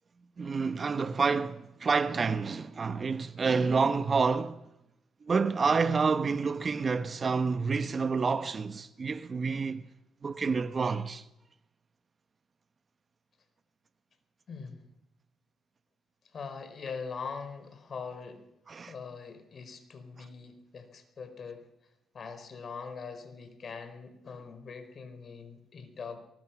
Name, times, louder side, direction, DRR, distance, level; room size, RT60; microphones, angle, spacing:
voice 1, 0.4-4.6 5.3-9.8 10.2-11.2 18.7-18.9, right 5 dB, 35° right, 1.0 m, -28 dB
voice 2, 14.5-14.9 16.2-18.5 18.9-21.7 22.1-26.2, left 5 dB, 50° left, 4.7 m, -42 dB
23.5 x 20.5 x 6.1 m
cardioid pair, 90°, 0 cm